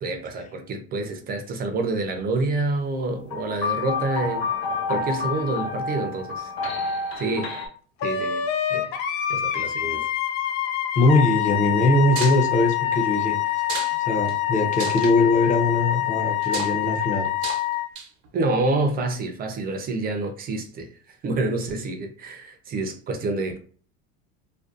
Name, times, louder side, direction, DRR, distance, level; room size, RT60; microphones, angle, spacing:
voice 1, 0.0-4.4 4.9-6.5 7.2-7.5 8.0-8.9 9.3-10.1 18.3-20.9 21.2-23.6, right 2 dB, 30° right, 0.4 m, -27 dB
sound 1, 3.3-7.7, left 4 dB, 90° left, 1.0 m, -29 dB
Wind instrument woodwind instrument, 8.0-17.9, left 12 dB, 70° left, 0.5 m, -26 dB
voice 2, 10.9-13.6 14.0-17.3, left 2 dB, 25° left, 0.5 m, -21 dB
sound 2, 12.1-12.4 13.6-14.0 14.3-14.4 14.7-15.1 16.4-16.7 17.4-17.6 18.0-18.3, right 6 dB, 90° right, 0.8 m, -32 dB
2.5 x 2.2 x 2.4 m
supercardioid pair, 130°, 32 cm